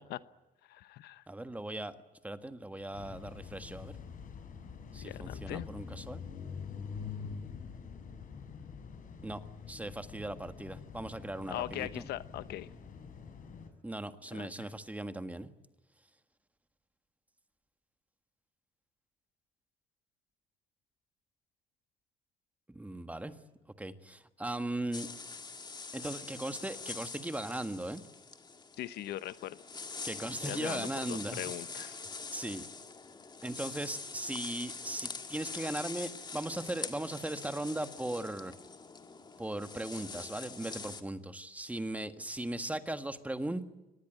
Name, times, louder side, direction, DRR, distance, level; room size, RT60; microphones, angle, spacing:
voice 1, 0.7-1.2 5.0-5.7 11.5-12.7 14.3-14.7 28.8-29.6 30.4-32.0, left 13 dB, 75° left, 14 dB, 1.0 m, -40 dB
voice 2, 1.3-2.0 2.2-3.9 4.9-6.2 9.2-9.4 9.7-12.0 13.8-15.5 22.7-23.4 23.8-25.1 25.9-28.0 30.0-31.5 32.3-32.7 33.4-38.5 39.4-43.6, right 1 dB, 10° right, 9 dB, 1.6 m, -38 dB
sound 1, 2.9-13.7, left 6 dB, 50° left, 5.0 m, -45 dB
sound 2, 24.9-41.0, left 4 dB, 25° left, 2.0 m, -44 dB
24.0 x 20.0 x 9.2 m, 1.1 s
cardioid pair, 110°, 17 cm